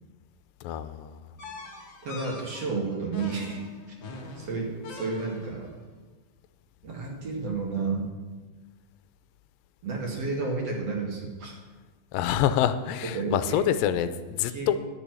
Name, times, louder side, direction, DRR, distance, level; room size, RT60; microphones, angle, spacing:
voice 1, 0.6-1.2 12.1-14.8, left 10 dB, 85° left, 11 dB, 2.3 m, -26 dB
sound 1, 1.4-5.7, left 3 dB, 45° left, 1.7 m, -43 dB
voice 2, 2.0-3.6 4.4-5.7 6.8-8.1 9.8-11.6 13.1-13.6 14.5-14.8, right 4 dB, 50° right, -1 dB, 2.9 m, -31 dB
10.5 x 7.0 x 9.1 m, 1.3 s
omnidirectional pair, 4.0 m